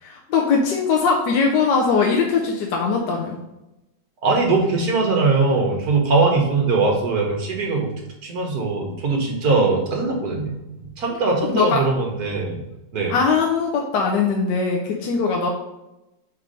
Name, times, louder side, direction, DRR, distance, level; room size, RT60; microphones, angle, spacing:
voice 1, 0.0-3.4 11.4-11.8 13.1-15.5, left 5 dB, 70° left, 0 dB, 1.4 m, -20 dB
voice 2, 4.2-7.9 8.2-10.6 11.0-12.6 12.9-13.2, right 3 dB, 55° right, 0 dB, 1.7 m, -21 dB
4.7 x 4.5 x 5.2 m, 0.94 s
omnidirectional pair, 2.0 m